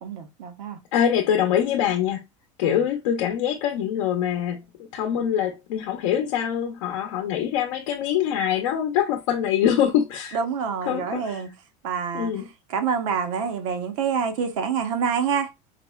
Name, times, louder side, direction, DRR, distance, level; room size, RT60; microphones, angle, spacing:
voice 1, 0.0-0.8 2.6-2.8 10.3-11.5 11.8-12.4 12.7-15.5, right 6 dB, 85° right, 0.8 m, -27 dB
voice 2, 0.9-2.2 2.6-4.6 4.9-10.4 10.9-11.4 12.1-12.4, left 9 dB, 80° left, 0.6 m, -24 dB
4.1 x 2.1 x 2.2 m
supercardioid pair, 140°, 16 cm